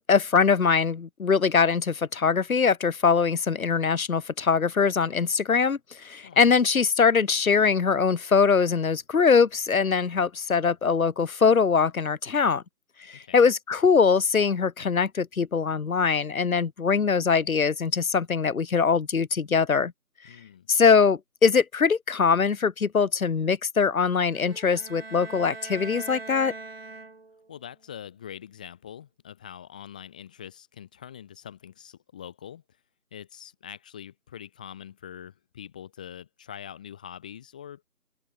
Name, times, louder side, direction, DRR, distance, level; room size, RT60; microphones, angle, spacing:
voice 1, 0.1-12.6 13.1-19.9 20.7-26.5, left 5 dB, 65° left, 0.7 m, -22 dB
voice 2, 13.1-13.5 20.3-20.7 27.5-32.6 33.1-37.8, left 9 dB, 5° left, 2.2 m, -43 dB
sound 1, 24.3-27.5, right 3 dB, 40° right, 3.3 m, -41 dB
open air
figure-of-eight pair, 165°, 45 cm